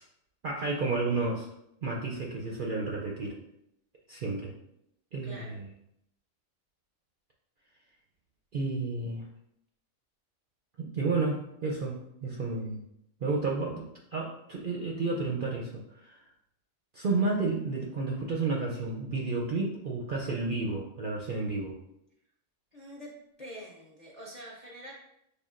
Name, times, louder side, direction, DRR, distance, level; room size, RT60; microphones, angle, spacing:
voice 1, 0.4-1.5 1.8-3.4 4.1-4.5 5.1-5.7 8.5-9.2 10.8-12.8 13.2-15.7 16.0-16.2 16.9-21.7, right 3 dB, 60° right, -2 dB, 0.5 m, -31 dB
voice 2, 5.2-5.6 22.7-23.1 23.4-24.9, equal, 45° left, -4 dB, 0.5 m, -45 dB
6.7 x 2.4 x 2.4 m, 0.78 s
omnidirectional pair, 1.4 m